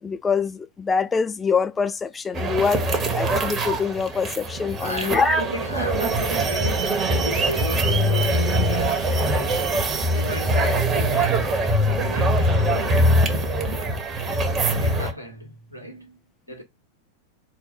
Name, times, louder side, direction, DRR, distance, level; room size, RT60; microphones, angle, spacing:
voice 1, 0.0-5.4, left 5 dB, 15° left, 0.4 m, -24 dB
sound 1, 2.4-15.1, right 1 dB, 25° right, 1.0 m, -22 dB
voice 2, 4.8-9.7 10.1-11.5 12.0-13.1 14.6-16.2 16.5-16.6, equal, 90° right, 1.2 m, -35 dB
4.0 x 2.2 x 4.3 m
figure-of-eight pair, 90°, 0 cm